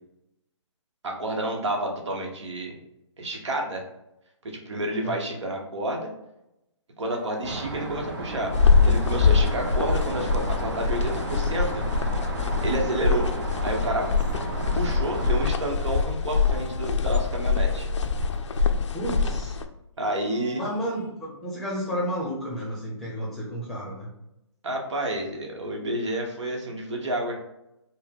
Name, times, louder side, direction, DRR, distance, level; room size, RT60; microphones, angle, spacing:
voice 1, 1.0-2.7 3.2-3.8 4.4-6.1 7.0-8.5 8.8-11.8 12.6-13.3 13.6-14.1 14.7-17.9 20.0-20.6 24.6-27.4, right 1 dB, 65° right, 1 dB, 1.1 m, -29 dB
sound 1, 7.0-7.7 8.4-11.6 12.5-15.0 15.7-18.7 20.0-21.1, right 1 dB, 90° right, 1.0 m, -47 dB
sound 2, 7.4-15.5, right 2 dB, 45° right, 0.7 m, -34 dB
sound 3, 8.5-19.7, left 5 dB, 70° left, 0.5 m, -24 dB
voice 2, 18.9-19.6 20.5-24.1, equal, ahead, -6 dB, 0.8 m, -32 dB
4.4 x 2.1 x 3.6 m, 0.86 s
hypercardioid pair, 150°, 16 cm